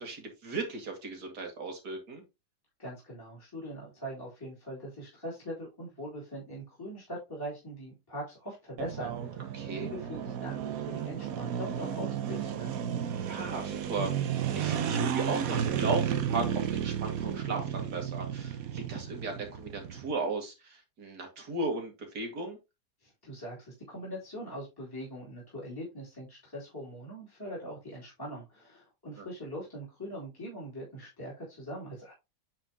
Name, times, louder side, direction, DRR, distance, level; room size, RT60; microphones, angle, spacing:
voice 1, 0.0-2.2 9.5-9.9 13.3-22.6 29.2-29.3, right 3 dB, 80° right, 3 dB, 2.5 m, -36 dB
voice 2, 2.8-12.7 23.0-32.1, equal, 15° left, -6 dB, 3.0 m, -42 dB
sound 1, 8.8-20.1, right 9 dB, 65° right, 1.2 m, -33 dB
9.0 x 4.5 x 2.9 m, 0.24 s
omnidirectional pair, 1.7 m